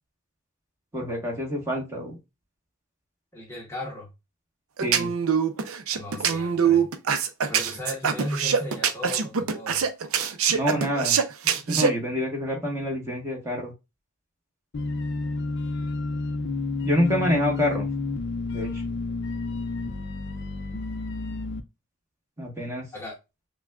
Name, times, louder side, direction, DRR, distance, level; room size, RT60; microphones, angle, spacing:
voice 1, 0.9-2.2 4.8-5.1 10.5-11.2 11.4-13.7 16.8-17.9 18.5-18.8 22.4-22.8, equal, 15° right, 1.2 m, -27 dB
voice 2, 3.3-4.1 5.9-6.8 7.5-9.8 22.9-23.2, left 1 dB, 10° left, 0.8 m, -36 dB
sound 1, 4.8-11.9, right 7 dB, 70° right, 0.5 m, -23 dB
sound 2, 14.7-21.6, left 3 dB, 50° left, 0.5 m, -30 dB
5.9 x 2.2 x 2.3 m
head